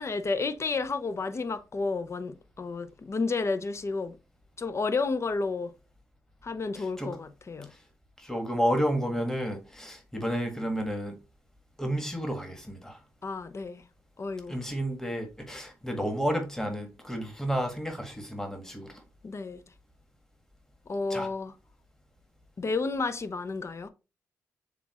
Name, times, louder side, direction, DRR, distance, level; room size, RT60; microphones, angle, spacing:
voice 1, 0.0-4.2 4.6-5.7 6.4-7.7 13.2-13.8 14.2-14.5 19.2-19.6 20.9-21.5 22.6-23.9, left 4 dB, 40° left, 0.6 m, -31 dB
voice 2, 6.7-7.2 8.2-11.1 11.8-13.0 14.5-18.9 21.1-21.3, equal, 5° left, 1.5 m, -31 dB
6.9 x 2.4 x 2.9 m
supercardioid pair, 50°, 7 cm